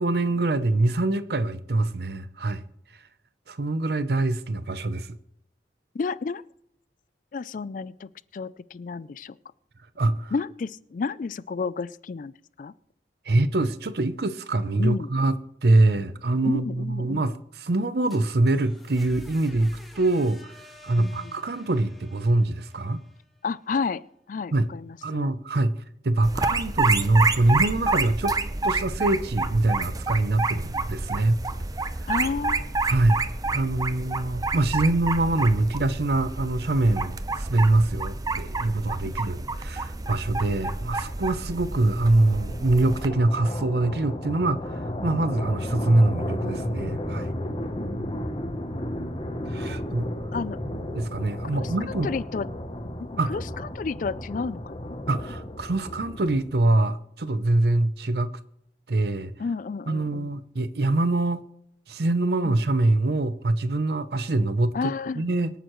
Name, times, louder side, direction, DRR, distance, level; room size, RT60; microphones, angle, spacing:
voice 1, 0.0-2.6 3.5-5.1 10.0-10.3 13.3-20.5 20.8-23.0 24.5-24.7 25.0-25.8 26.0-28.4 28.6-31.4 32.0-32.1 32.9-33.2 33.5-47.3 49.5-50.1 50.7-52.1 53.2-53.4 55.1-58.3 58.9-59.3 59.9-61.4 61.9-65.5, right 2 dB, 60° right, 0.7 m, -24 dB
voice 2, 5.9-6.4 7.3-9.3 10.3-12.3 12.6-12.7 14.8-15.1 16.4-17.2 21.0-21.4 23.4-24.0 24.3-25.3 32.1-32.7 47.7-47.9 50.3-50.6 51.5-51.7 52.0-52.5 53.0-53.4 53.7-54.9 59.4-60.4 62.4-62.6 64.7-65.2, left 4 dB, 50° left, 0.4 m, -31 dB
sound 1, 17.8-23.7, left 1 dB, ahead, 1.8 m, -49 dB
sound 2, 26.2-43.1, right 3 dB, 20° right, 0.6 m, -29 dB
sound 3, 40.7-56.7, left 1 dB, 30° left, 0.9 m, -34 dB
25.0 x 9.2 x 3.1 m
head